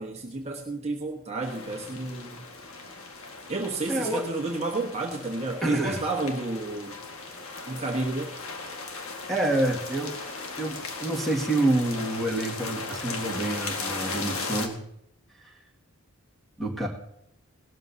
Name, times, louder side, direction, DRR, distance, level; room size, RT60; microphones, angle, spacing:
voice 1, 0.0-2.4 3.5-7.0 7.7-8.4, right 2 dB, 30° right, 0 dB, 1.3 m, -31 dB
sound 1, 1.4-14.7, left 3 dB, 70° left, 1.7 m, -37 dB
voice 2, 3.9-4.2 5.6-6.0 9.3-10.1 10.6-14.8 15.4-15.5 16.6-16.9, right 2 dB, ahead, -1 dB, 2.0 m, -27 dB
18.0 x 13.0 x 2.8 m, 0.79 s
head